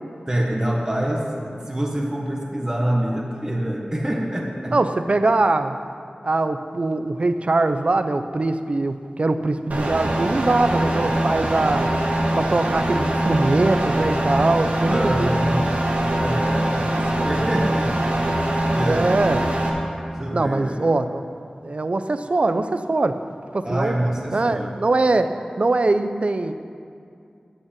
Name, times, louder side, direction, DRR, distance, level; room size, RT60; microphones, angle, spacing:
voice 1, 0.3-4.8 14.9-15.8 16.2-18.0 18.2-19.3 20.1-20.8 23.6-24.7, right 1 dB, 25° right, -1 dB, 1.5 m, -26 dB
voice 2, 4.7-5.8 6.2-11.9 12.4-15.3 18.9-19.4 20.3-21.2 21.6-23.2 23.5-24.0 24.3-26.5, right 2 dB, 50° right, 10 dB, 0.6 m, -22 dB
sound 1, 9.7-19.7, right 1 dB, 85° right, 1.7 m, -22 dB
14.0 x 5.5 x 8.7 m, 2.4 s
wide cardioid pair, 80°, 3 cm